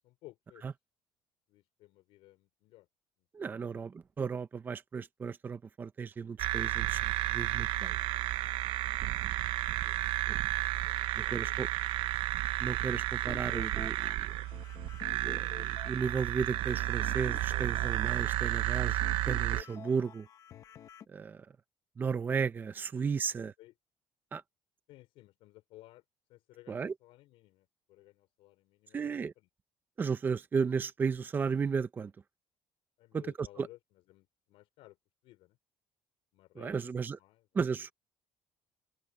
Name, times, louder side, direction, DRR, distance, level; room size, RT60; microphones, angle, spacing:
voice 1, 0.0-0.7 1.5-2.9 3.4-3.5 3.7-3.9 9.5-9.6 9.8-10.1 10.7-12.1 22.9-23.1 23.4-23.7 24.9-26.0 26.3-29.5 33.0-33.8 34.1-35.0 35.2-35.6 36.3-37.5, left 17 dB, 75° left, 5.5 m, -57 dB
voice 2, 3.3-8.0 11.2-11.7 12.6-14.3 15.1-19.0 19.3-20.3 21.1-21.5 22.0-23.5 24.3-24.4 26.7-26.9 28.9-29.3 30.0-32.1 33.1-33.7 36.6-37.2 37.5-37.9, right 5 dB, 20° right, 0.7 m, -34 dB
sound 1, 6.4-19.6, right 16 dB, 65° right, 0.8 m, -32 dB
sound 2, 13.3-21.1, left 9 dB, 40° left, 1.3 m, -51 dB
cardioid pair, 175°, 9 cm